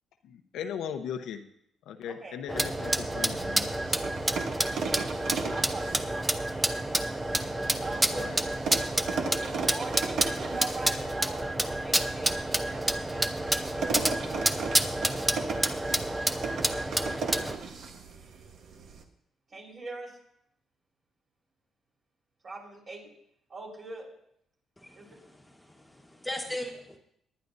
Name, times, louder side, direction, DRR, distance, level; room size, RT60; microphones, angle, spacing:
voice 1, 0.2-1.4 1.9-4.0 7.3-7.8 8.1-8.4, left 8 dB, 80° left, 6 dB, 0.8 m, -38 dB
voice 2, 2.0-2.4 4.7-5.1 5.5-6.4 7.8-8.4 8.9-14.1 19.5-20.2 22.4-23.1 23.5-24.1 24.9-25.2, right 3 dB, 45° right, -2 dB, 4.5 m, -42 dB
sound 1, 2.5-17.6, right 1 dB, 15° right, 0.7 m, -29 dB
sound 2, 2.6-19.0, right 5 dB, 65° right, 1.2 m, -38 dB
voice 3, 24.8-27.0, left 1 dB, 10° left, 1 dB, 1.4 m, -39 dB
19.0 x 10.5 x 2.7 m, 0.73 s
cardioid pair, 90°, 0 cm